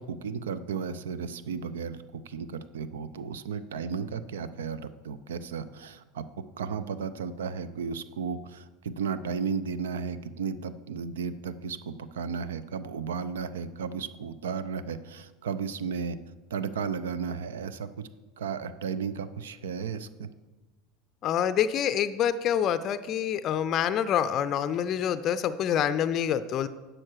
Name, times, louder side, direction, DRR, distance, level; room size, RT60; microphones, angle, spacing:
voice 1, 0.0-6.2 6.6-16.2 16.5-18.1 18.4-20.3, right 6 dB, 70° right, 14 dB, 0.5 m, -34 dB
voice 2, 21.2-26.7, left 9 dB, 40° left, 12 dB, 0.5 m, -26 dB
11.5 x 7.7 x 4.6 m, 1.2 s
figure-of-eight pair, 75°, 0 cm